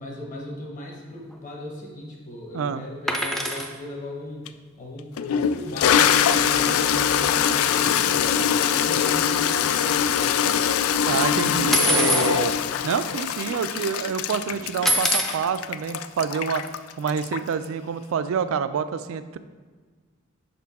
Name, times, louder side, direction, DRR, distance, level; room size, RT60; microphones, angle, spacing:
voice 1, 0.0-4.5 4.8-10.5, left 1 dB, 40° left, -1 dB, 1.0 m, -37 dB
sound 1, 3.1-3.7 5.9-6.0 6.2-6.4 6.7-6.8 7.6-7.7 8.2-8.6 8.8-10.3 11.7-12.3 13.1-13.2 13.4-13.9 14.9-15.4 16.6-16.7, right 1 dB, ahead, 0.4 m, -25 dB
Toilet flush, 4.5-4.6 5.2-17.6, left 8 dB, 85° left, 0.3 m, -23 dB
sound 2, 7.7-8.4 10.4-11.0 12.4-12.9 14.5-15.3, left 1 dB, 60° left, 0.8 m, -42 dB
voice 2, 11.1-12.5 12.8-16.6 17.0-19.4, right 6 dB, 70° right, 13 dB, 0.3 m, -27 dB
6.1 x 4.3 x 4.1 m, 1.5 s
head